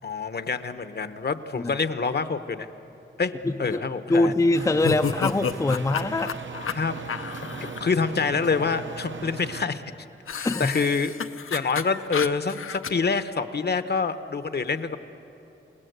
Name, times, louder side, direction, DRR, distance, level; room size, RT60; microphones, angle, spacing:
voice 1, 0.0-2.7 3.2-3.3 3.6-4.3 6.7-7.0 7.8-9.8 10.3-11.1 11.5-15.0, left 5 dB, 50° left, 11 dB, 0.9 m, -26 dB
voice 2, 3.4-3.8 4.1-6.3 10.4-10.8, left 2 dB, 15° left, 7 dB, 0.5 m, -23 dB
sound 1, 4.5-9.7, right 5 dB, 65° right, 1.0 m, -38 dB
sound 2, 4.8-7.8 10.3-12.9, left 7 dB, 80° left, 0.7 m, -31 dB
29.0 x 18.5 x 8.0 m, 2.9 s
wide cardioid pair, 135°, 21 cm